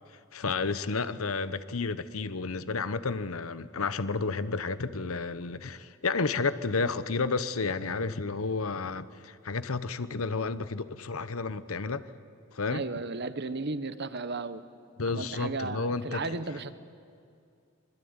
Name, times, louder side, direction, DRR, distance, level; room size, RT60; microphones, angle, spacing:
voice 1, 0.1-12.0 12.5-12.8 15.0-16.4, left 4 dB, 75° left, 14 dB, 1.0 m, -31 dB
voice 2, 12.7-14.6 15.1-16.7, right 3 dB, 50° right, 13 dB, 1.1 m, -34 dB
26.0 x 21.5 x 9.7 m, 2.4 s
head